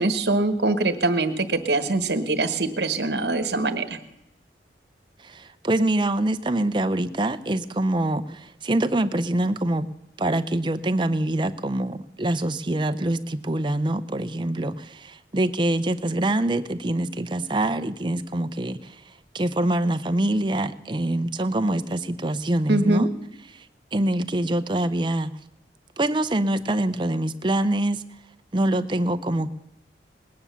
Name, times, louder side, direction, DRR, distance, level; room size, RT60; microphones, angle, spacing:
voice 1, 0.0-3.8 22.7-23.1, right 2 dB, 65° right, 11 dB, 1.2 m, -23 dB
voice 2, 5.2-9.9 10.2-23.1 23.5-23.7 23.9-25.3 26.0-28.0 28.5-29.5, right 1 dB, 25° right, 10 dB, 0.6 m, -25 dB
19.5 x 9.7 x 7.0 m, 0.85 s
head